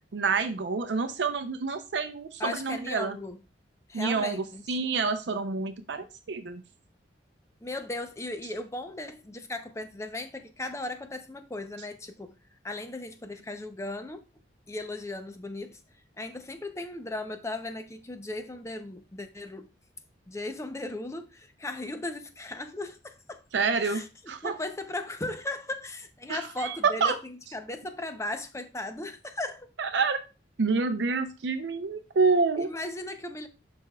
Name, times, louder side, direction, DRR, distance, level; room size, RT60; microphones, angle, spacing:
voice 1, 0.1-3.2 3.9-6.6 23.5-24.6 26.3-27.2 29.8-30.2 30.6-32.7, right 4 dB, 65° right, 0.5 m, -28 dB
voice 2, 2.4-3.4 3.9-4.6 7.6-12.3 12.6-14.2 14.7-15.8 16.2-19.7 20.3-23.4 23.8-24.1 24.4-29.7 32.6-33.5, left 2 dB, 15° left, 0.6 m, -37 dB
11.5 x 4.3 x 2.3 m
head